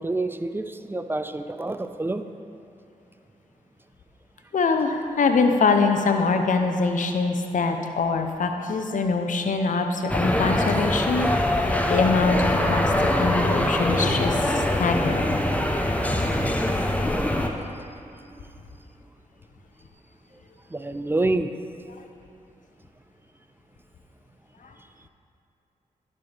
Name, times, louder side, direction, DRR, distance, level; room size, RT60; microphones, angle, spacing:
voice 1, 0.0-2.2 17.2-17.6 17.9-18.4 20.7-21.5, right 2 dB, 15° right, 10 dB, 0.4 m, -28 dB
voice 2, 4.5-12.9 13.2-15.4 24.6-24.7, left 4 dB, 60° left, 5 dB, 0.7 m, -24 dB
sound 1, 10.1-17.5, left 1 dB, 10° left, 0.7 m, -23 dB
11.0 x 5.5 x 3.3 m, 2.7 s
cardioid pair, 45°, 15 cm